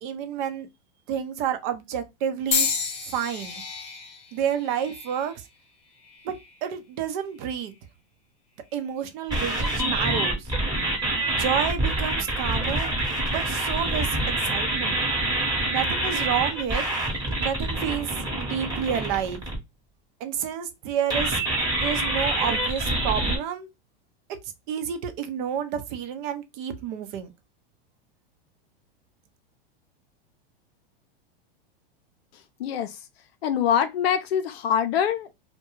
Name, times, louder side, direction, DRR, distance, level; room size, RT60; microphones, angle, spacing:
voice 1, 0.0-0.7 1.1-2.7 3.1-3.6 4.3-5.3 6.2-7.7 8.7-10.5 11.3-12.9 13.3-15.0 15.7-16.8 17.4-18.1 18.4-19.4 20.2-21.4 21.8-23.7 24.7-27.3, right 8 dB, 50° right, 0.6 m, -29 dB
sound 1, 2.5-6.6 7.3-7.8 8.7-8.9, left 5 dB, 20° left, 0.6 m, -32 dB
sound 2, 9.3-19.6 21.1-23.4, right 1 dB, 15° right, 1.0 m, -26 dB
voice 2, 32.6-33.0 33.4-35.4, left 8 dB, 85° left, 0.5 m, -24 dB
2.3 x 2.2 x 3.0 m
hypercardioid pair, 120°, 30 cm